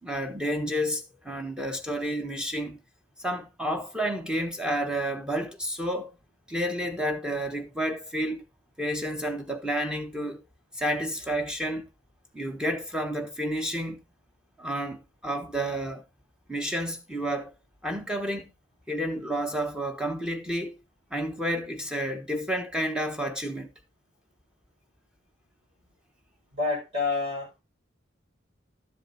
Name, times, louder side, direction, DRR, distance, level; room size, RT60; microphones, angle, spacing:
voice 1, 0.0-2.8 3.2-6.1 6.5-8.4 8.8-10.4 10.7-11.9 12.3-14.0 14.6-16.0 16.5-17.5 17.8-18.5 18.9-20.8 21.1-23.7, equal, 5° right, 1.1 m, -30 dB
voice 2, 26.5-27.6, left 3 dB, 35° right, 5.6 m, -28 dB
12.5 x 7.6 x 2.7 m
head